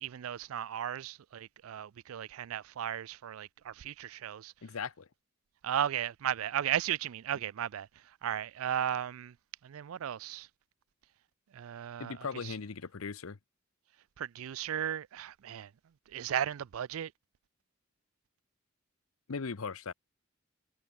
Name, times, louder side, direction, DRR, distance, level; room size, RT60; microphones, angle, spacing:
voice 1, 0.0-4.5 5.6-9.4 9.6-10.5 11.5-12.6 14.2-15.7 16.1-17.1, right 10 dB, 85° right, 0.4 m, -35 dB
voice 2, 4.6-5.1 12.0-13.4 19.3-19.9, left 5 dB, 85° left, 0.8 m, -38 dB
head